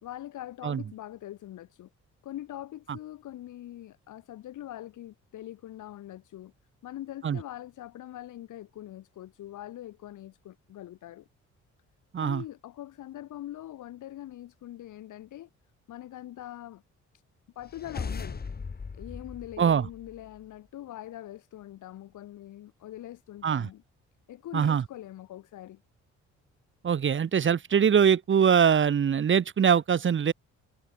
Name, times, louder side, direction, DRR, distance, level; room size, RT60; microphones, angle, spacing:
voice 1, 0.0-1.9 2.2-6.5 6.8-11.3 12.2-15.5 15.9-16.8 17.6-18.4 18.9-23.8 24.3-25.8, left 13 dB, 80° left, 4.1 m, -43 dB
sound 1, 17.6-20.4, left 5 dB, 30° left, 2.6 m, -38 dB
voice 2, 26.8-30.3, right 7 dB, 40° right, 1.2 m, -23 dB
cardioid pair, 90°, 30 cm